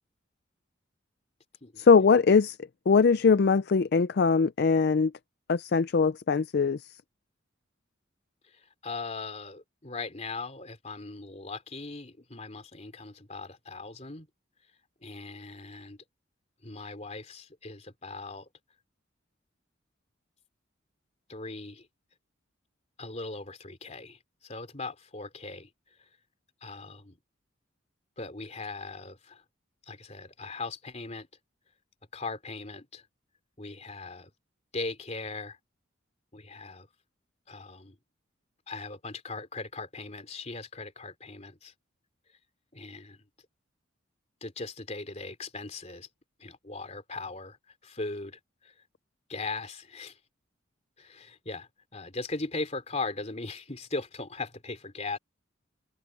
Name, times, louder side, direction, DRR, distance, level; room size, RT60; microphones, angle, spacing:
voice 1, 1.8-2.6 2.9-5.1 5.5-6.8, left 5 dB, 55° left, 0.4 m, -21 dB
voice 2, 8.4-14.3 15.0-16.0 16.6-18.5 21.3-21.9 23.0-25.7 26.0-26.1 26.6-27.2 28.2-29.4 29.9-31.3 32.1-33.0 33.6-34.3 34.7-35.6 36.3-36.9 37.5-38.0 38.7-41.7 42.7-43.2 44.4-46.1 46.4-47.6 47.8-48.7 49.3-50.2 51.0-55.2, left 3 dB, 35° left, 3.4 m, -39 dB
head